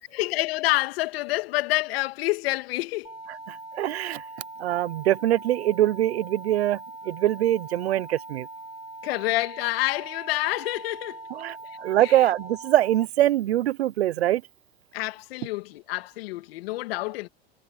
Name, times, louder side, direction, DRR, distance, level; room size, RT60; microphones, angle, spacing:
voice 1, 0.1-3.1 9.0-11.2 11.6-12.3 14.9-17.3, left 20 dB, 70° left, 2.6 m, -28 dB
sound 1, 3.0-13.1, right 3 dB, 15° right, 4.5 m, -41 dB
voice 2, 3.5-4.2 4.6-6.8 7.0-8.5 11.3-14.4, right 13 dB, 80° right, 1.0 m, -23 dB
hypercardioid pair, 100°, 31 cm